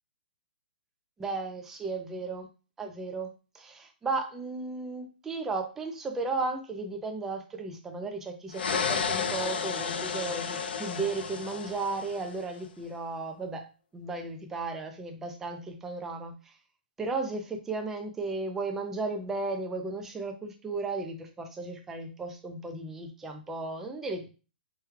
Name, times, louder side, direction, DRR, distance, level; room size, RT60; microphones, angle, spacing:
voice 1, 1.2-2.5 2.8-13.7 13.9-16.5 17.0-17.4 17.7-24.3, right 3 dB, 5° right, 4 dB, 0.4 m, -35 dB
sound 1, 8.5-12.4, left 6 dB, 70° left, 0.6 m, -32 dB
4.8 x 2.2 x 3.1 m, 0.33 s
hypercardioid pair, 175°, 6 cm